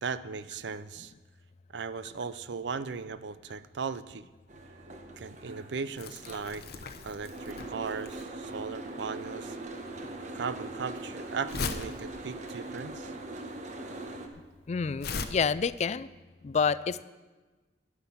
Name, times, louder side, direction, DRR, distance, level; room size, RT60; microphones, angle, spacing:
voice 1, 0.0-1.1 1.7-4.3 5.2-6.7 7.0-9.6 10.3-13.1, right 5 dB, 85° right, 15 dB, 0.5 m, -37 dB
Boat Water vehicle, 4.5-14.3, right 2 dB, 45° right, 1.1 m, -42 dB
Crumpling crinkling, 6.0-15.3, left 4 dB, 60° left, 0.8 m, -40 dB
voice 2, 14.7-16.1 16.4-17.0, left 5 dB, 40° left, 17 dB, 0.4 m, -28 dB
10.5 x 9.6 x 7.2 m, 1.2 s
head